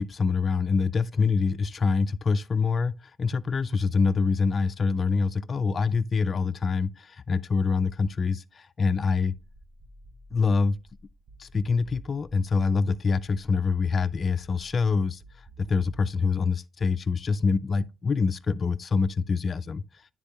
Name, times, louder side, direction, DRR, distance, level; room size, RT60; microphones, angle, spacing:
voice 1, 0.0-9.3 10.3-10.8 11.4-15.2 15.6-19.8, left 4 dB, 40° left, 0.3 m, -25 dB
sound 1, 9.3-12.6 13.2-16.6, right 1 dB, 45° right, 0.9 m, -51 dB
9.6 x 3.6 x 2.8 m
cardioid pair, 90°, 0 cm